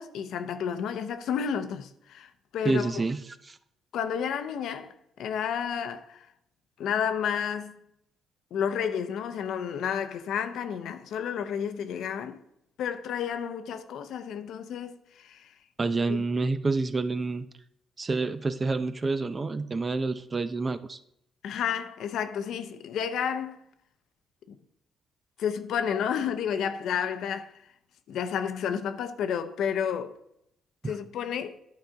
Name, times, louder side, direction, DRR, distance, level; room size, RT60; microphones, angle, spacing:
voice 1, 0.0-3.0 3.9-6.3 6.8-7.8 8.5-12.4 12.8-15.5 16.1-16.2 21.4-23.6 24.5-24.6 25.4-27.5 28.1-30.2 30.8-31.6, left 8 dB, 75° left, 0.7 m, -31 dB
voice 2, 2.6-3.2 3.4-3.6 15.8-17.5 18.0-21.0 30.8-31.0, right 3 dB, 30° right, 0.6 m, -28 dB
10.5 x 4.0 x 5.7 m
cardioid pair, 90°, 0 cm